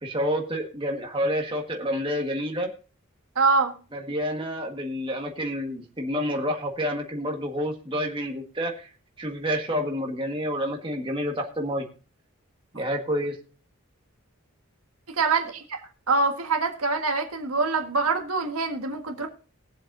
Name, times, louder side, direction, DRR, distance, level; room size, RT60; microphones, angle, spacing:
voice 1, 0.0-2.7 3.9-8.9 9.2-11.9 12.7-13.4, equal, 25° right, 1 dB, 1.6 m, -29 dB
voice 2, 3.4-3.7 15.1-15.8 16.1-19.3, right 4 dB, 85° right, 3 dB, 1.7 m, -24 dB
21.0 x 7.6 x 2.7 m, 0.36 s
head